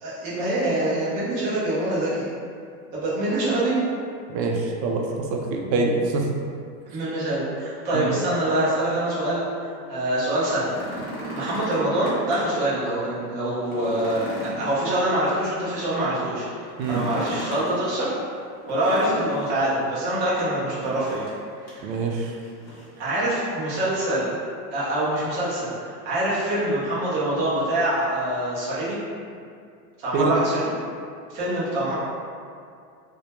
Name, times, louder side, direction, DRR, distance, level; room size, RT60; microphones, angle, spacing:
voice 1, 0.0-2.3 2.9-3.8 6.9-11.0 11.3-18.2 18.7-21.3 21.6-22.3 23.0-24.3 24.7-29.0 30.0-30.7 31.3-32.0, right 1 dB, 20° right, -9 dB, 0.4 m, -25 dB
voice 2, 4.3-6.3 7.9-8.1 16.8-17.0 21.8-22.3 30.1-30.4, right 3 dB, 80° right, 1 dB, 0.5 m, -25 dB
sound 1, 10.4-12.6 13.1-13.2 13.6-15.5 16.7-17.8 18.7-19.6 20.7-21.4 21.7-21.8 22.4-23.0 24.1-24.2, equal, 35° left, 0.8 m, -36 dB
2.1 x 2.1 x 2.8 m, 2.3 s
supercardioid pair, 135°, 50 cm